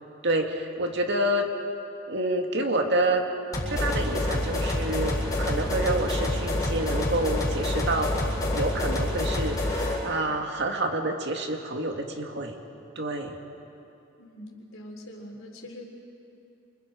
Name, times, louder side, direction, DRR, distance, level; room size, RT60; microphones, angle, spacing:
voice 1, 0.2-1.5 2.1-3.2 3.7-8.1 8.5-12.6 13.0-13.4, right 1 dB, 55° right, 3 dB, 2.1 m, -28 dB
sound 1, 3.5-10.0, left 1 dB, 15° left, 7.1 m, -27 dB
voice 2, 14.2-15.8, left 1 dB, 70° left, 1 dB, 3.8 m, -43 dB
28.5 x 27.5 x 5.2 m, 2.7 s
head